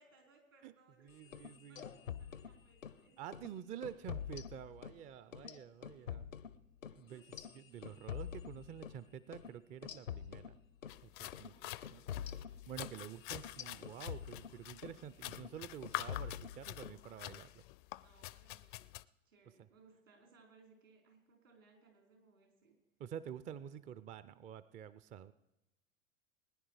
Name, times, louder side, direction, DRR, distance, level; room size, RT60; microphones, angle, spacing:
voice 1, 0.0-1.3 1.7-4.1 5.3-5.4 6.0-6.4 6.9-7.2 7.5-7.8 11.4-12.7 18.0-18.9 19.2-22.7, right 4 dB, 80° right, 1 dB, 4.8 m, -67 dB
voice 2, 1.0-1.8 3.2-6.3 6.9-7.2 7.5-10.6 11.0-12.4 12.7-17.6 19.6-19.7 23.0-25.3, right 9 dB, 20° right, 16 dB, 0.4 m, -49 dB
sound 1, 1.2-3.0 3.3-3.5 3.8-5.0 5.3-9.0 9.3-9.5 9.8-11.0 11.3-11.5 11.8-15.0 15.3-15.6 15.8-17.0, left 9 dB, 80° left, 0.8 m, -46 dB
sound 2, 10.9-19.0, left 18 dB, 40° left, 0.5 m, -47 dB
20.5 x 10.0 x 4.9 m, 0.96 s
figure-of-eight pair, 85°, 39 cm